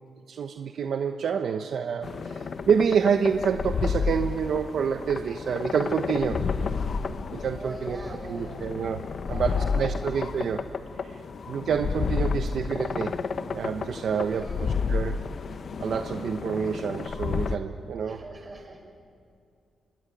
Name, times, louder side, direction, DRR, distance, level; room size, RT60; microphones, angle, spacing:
voice 1, 0.3-6.4 7.3-8.0 8.3-9.0 9.3-10.6 11.0-11.1 11.5-13.2 13.5-15.2 15.8-18.2, right 6 dB, 60° right, 6 dB, 1.1 m, -28 dB
sound 1, 2.0-17.6, left 5 dB, 50° left, 1.0 m, -31 dB
voice 2, 7.5-8.7 9.2-10.1 12.2-12.4 14.1-14.7 17.9-18.9, right 2 dB, 25° right, 3 dB, 5.5 m, -42 dB
25.0 x 19.5 x 9.3 m, 2.5 s
cardioid pair, 125°, 0 cm